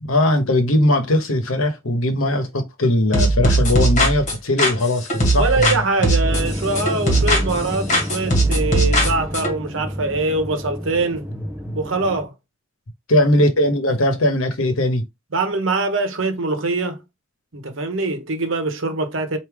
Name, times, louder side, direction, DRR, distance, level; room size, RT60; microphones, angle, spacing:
voice 1, 0.0-5.8 11.7-11.8 13.1-15.0, left 1 dB, 80° left, 1.1 m, -19 dB
sound 1, 3.1-5.8 6.0-7.6 7.9-9.5, right 1 dB, 35° left, 1.6 m, -18 dB
voice 2, 5.4-11.3 11.7-12.3 15.3-17.0 17.5-19.4, right 3 dB, 70° right, 1.0 m, -23 dB
sound 2, 6.2-12.2, equal, 10° right, 0.7 m, -30 dB
4.8 x 2.7 x 3.5 m
head